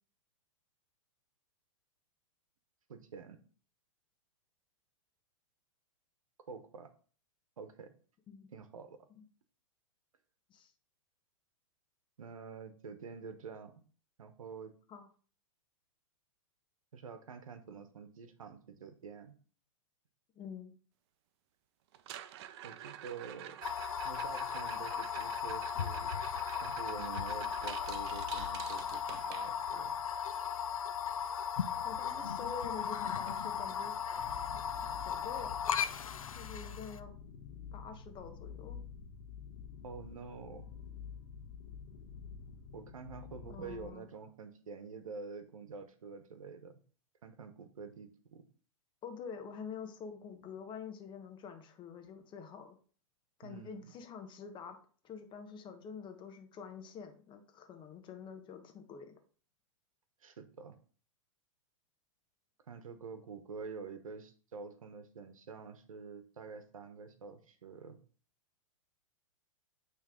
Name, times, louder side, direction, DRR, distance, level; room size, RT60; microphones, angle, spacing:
voice 1, 2.9-3.4 6.5-6.9 7.6-7.9 8.5-9.0 12.2-13.7 14.2-14.7 16.9-19.3 22.6-23.6 24.0-26.2 26.6-29.9 39.8-40.7 42.7-46.7 47.2-48.5 53.4-53.9 60.2-60.8 62.7-68.0, right 5 dB, 80° right, 9 dB, 1.0 m, -47 dB
voice 2, 20.3-20.7 31.8-34.0 34.9-35.5 36.3-37.1 37.7-38.8 43.4-44.1 49.0-52.8 53.4-54.8 55.0-59.1, left 6 dB, 30° left, 6 dB, 1.2 m, -47 dB
sound 1, 21.9-29.9 32.2-32.3 32.5-32.8 33.3-33.4 33.9-34.0 35.9-36.0, right 11 dB, 50° right, 0.6 m, -48 dB
sound 2, 23.6-37.0, left 8 dB, 90° left, 0.5 m, -37 dB
sound 3, 34.2-43.9, left 7 dB, 65° left, 1.2 m, -49 dB
8.7 x 3.4 x 3.7 m, 0.41 s
hypercardioid pair, 115°, 17 cm